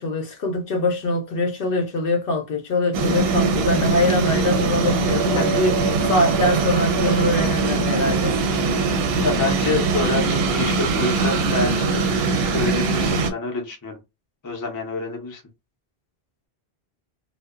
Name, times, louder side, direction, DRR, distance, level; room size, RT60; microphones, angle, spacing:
voice 1, 0.0-8.3, left 1 dB, 60° left, 0.7 m, -23 dB
sound 1, 2.9-13.3, right 3 dB, 70° right, 0.7 m, -21 dB
voice 2, 9.2-14.0 14.4-15.4, left 3 dB, 25° left, 0.5 m, -27 dB
2.6 x 2.1 x 2.3 m
omnidirectional pair, 1.1 m